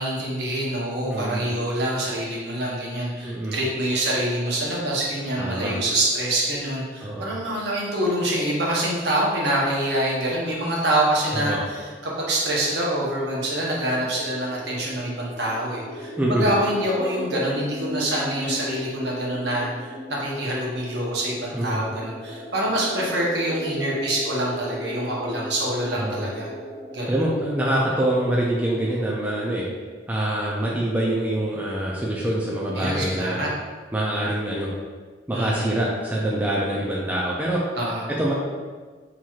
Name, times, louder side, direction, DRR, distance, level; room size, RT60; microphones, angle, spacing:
voice 1, 0.0-26.5 26.9-27.1 32.8-33.5 35.3-35.7 37.8-38.0, right 1 dB, 65° right, -4 dB, 0.9 m, -26 dB
voice 2, 1.1-1.4 3.2-3.6 5.4-5.8 7.0-7.3 11.3-11.6 16.2-16.5 21.5-21.8 26.0-26.2 27.1-29.6 30.1-33.4 33.9-34.7 35.3-37.6 38.2-38.3, right 1 dB, 10° right, -5 dB, 0.3 m, -25 dB
sound 1, 13.9-29.6, equal, 30° right, 1.5 m, -37 dB
4.4 x 3.0 x 2.4 m, 1.4 s
head